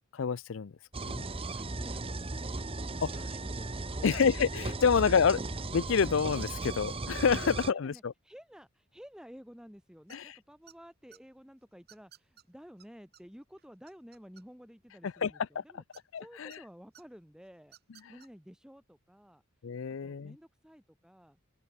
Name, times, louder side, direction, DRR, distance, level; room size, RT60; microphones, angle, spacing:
voice 1, 0.1-0.7 1.0-1.2 3.0-3.1 4.0-5.4 5.7-8.1 10.1-10.3 15.2-15.3 15.6-15.7 16.1-16.5 19.6-20.3, left 6 dB, 65° left, 0.5 m, -28 dB
sound 1, 0.9-7.7, right 2 dB, 25° right, 1.0 m, -36 dB
voice 2, 1.5-2.7 3.1-4.2 7.4-15.8 16.2-17.8 18.1-19.4 20.0-21.4, equal, 5° right, 2.6 m, -53 dB
sound 2, 10.1-10.4 10.7-11.2 11.9-12.4 12.8-12.9 13.1-13.2 13.6-14.7 15.9-16.6 16.9-17.0 17.6-18.3, right 11 dB, 45° right, 3.0 m, -57 dB
open air
head